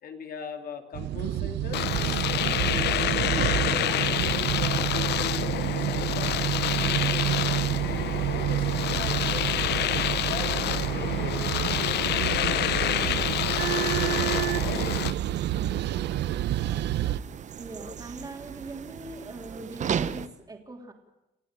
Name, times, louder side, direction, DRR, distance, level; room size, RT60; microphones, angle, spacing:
voice 1, 0.0-2.6 3.5-7.8 8.3-9.5 10.2-15.1, left 6 dB, 60° left, 5 dB, 2.9 m, -40 dB
sound 1, 0.9-17.2, right 12 dB, 85° right, 0.8 m, -28 dB
Domestic sounds home sounds, 1.7-15.1, left 13 dB, 75° left, 0.9 m, -28 dB
sound 2, 13.8-20.3, right 8 dB, 45° right, 1.0 m, -37 dB
voice 2, 17.6-20.9, right 2 dB, 20° right, 3 dB, 3.3 m, -41 dB
29.5 x 16.0 x 9.0 m, 0.91 s
cardioid pair, 150°, 18 cm